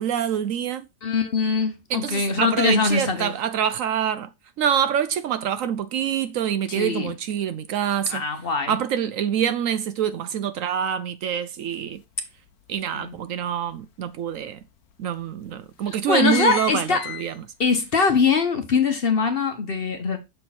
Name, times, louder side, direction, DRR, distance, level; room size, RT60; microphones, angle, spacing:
voice 1, 0.0-0.8 1.9-4.3 4.6-8.2 8.7-12.0 12.7-14.6 15.0-17.3, right 9 dB, 70° right, 0.9 m, -25 dB
voice 2, 1.0-3.3 6.7-7.2 8.1-8.8 13.0-13.2 15.9-17.1 17.6-20.2, left 5 dB, 45° left, 1.0 m, -22 dB
Gate Creak, 12.0-12.1 12.5-13.7 14.3-14.4 14.7-14.8 15.5-15.7 15.9-17.8 18.2-18.3, left 10 dB, 80° left, 1.2 m, -34 dB
6.5 x 4.5 x 4.1 m
omnidirectional pair, 1.6 m